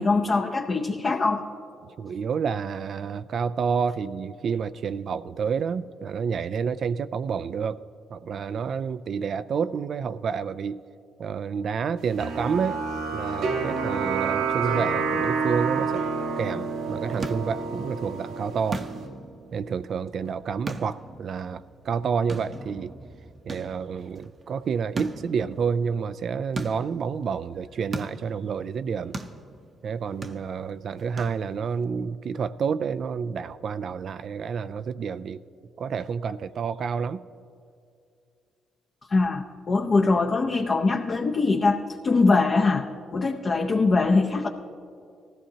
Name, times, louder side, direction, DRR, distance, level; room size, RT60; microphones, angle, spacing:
voice 1, 0.0-1.4 39.1-42.9 43.1-44.5, left 3 dB, 40° left, 1 dB, 0.7 m, -22 dB
voice 2, 1.9-7.8 8.1-10.8 11.2-12.8 13.1-16.0 16.4-18.8 19.5-22.9 23.5-29.2 29.8-35.4 35.8-37.2, right 6 dB, 60° right, 13 dB, 0.3 m, -29 dB
sound 1, 12.2-19.1, right 5 dB, 90° right, 1.4 m, -28 dB
sound 2, 16.7-31.8, right 2 dB, 40° right, 0.7 m, -40 dB
18.5 x 14.0 x 2.8 m, 2.4 s
cardioid pair, 90°, 0 cm